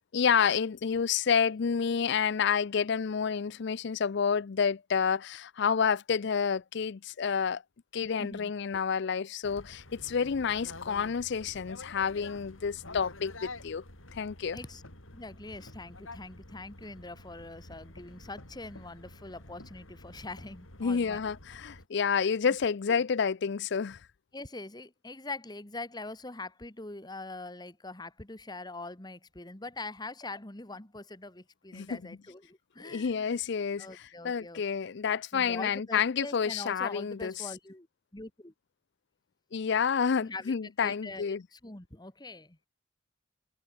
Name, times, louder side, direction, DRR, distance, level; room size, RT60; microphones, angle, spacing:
voice 1, 0.1-7.6 7.9-13.8 14.1-14.6 20.8-24.0 31.7-32.0 32.8-37.5 39.5-41.4, left 6 dB, 55° left, 0.5 m, -29 dB
voice 2, 8.2-8.5 14.5-14.8 15.1-21.2 22.9-23.0 24.3-33.3 33.8-34.6 35.3-37.9 38.1-38.5 40.2-40.5 40.8-42.6, left 2 dB, 20° left, 1.6 m, -43 dB
sound 1, 9.4-21.9, left 2 dB, 75° left, 5.8 m, -49 dB
head